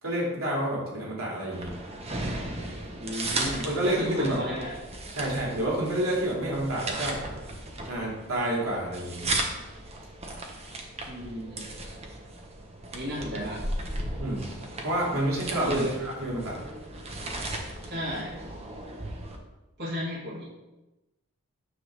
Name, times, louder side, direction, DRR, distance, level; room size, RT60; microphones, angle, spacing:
voice 1, 0.0-1.8 3.6-4.4 5.1-7.2 7.8-9.4 14.2-14.5 14.8-16.6, right 1 dB, 85° right, -5 dB, 3.3 m, -29 dB
sound 1, 1.5-19.4, right 2 dB, 30° right, 1.2 m, -36 dB
voice 2, 3.0-4.8 11.1-11.7 12.9-13.6 15.6-15.9 17.8-18.3 19.8-20.4, equal, 50° right, -6 dB, 2.6 m, -33 dB
9.8 x 3.8 x 6.4 m, 1.0 s
head